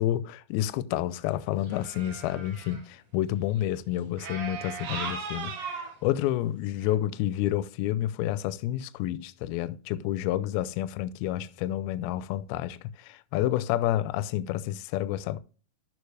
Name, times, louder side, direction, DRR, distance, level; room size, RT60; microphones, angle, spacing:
voice 1, 0.0-15.4, left 13 dB, 80° left, 2.3 m, -29 dB
sound 1, 1.6-2.8 4.2-6.0 6.8-6.9, right 5 dB, 50° right, 2.6 m, -37 dB
13.0 x 4.8 x 3.3 m
omnidirectional pair, 4.7 m